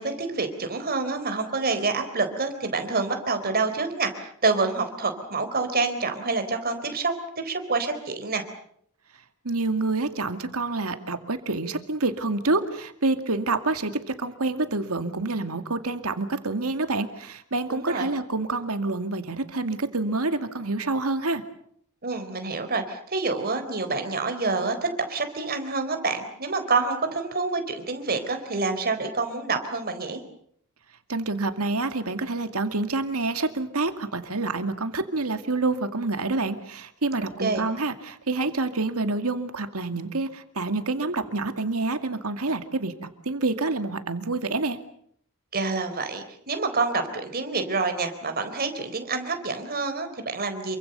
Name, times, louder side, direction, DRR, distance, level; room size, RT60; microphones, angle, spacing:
voice 1, 0.0-7.1 7.4-8.4 17.7-18.1 22.0-24.7 25.1-30.2 37.2-37.7 45.5-50.8, right 3 dB, 45° right, 7 dB, 4.0 m, -27 dB
voice 2, 9.4-21.4 31.1-44.8, right 3 dB, 85° right, 8 dB, 2.3 m, -27 dB
28.0 x 24.5 x 6.9 m, 0.67 s
head